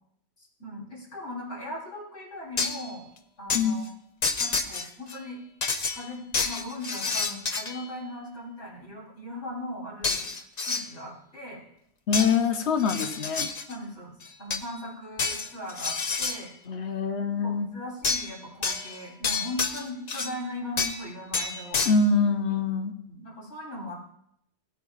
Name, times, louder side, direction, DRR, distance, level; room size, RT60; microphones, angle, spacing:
voice 1, 0.4-3.1 3.4-3.9 4.4-5.4 5.9-10.3 10.6-11.6 13.7-16.5 17.4-22.0 23.1-24.0, left 1 dB, 90° left, -5 dB, 3.9 m, -39 dB
sound 1, 2.6-2.9 3.5-3.6 4.2-5.2 5.6-7.9 10.0-10.9 12.1-12.4 12.8-13.7 14.2-14.7 15.2-16.4 18.0-18.3 18.6-20.4 20.8-21.1 21.3-21.9, left 4 dB, 45° left, 0.7 m, -29 dB
voice 2, 12.1-13.5 16.7-17.7 21.9-22.9, left 4 dB, 75° left, 6 dB, 1.1 m, -24 dB
17.0 x 9.1 x 2.4 m, 0.72 s
omnidirectional pair, 1.2 m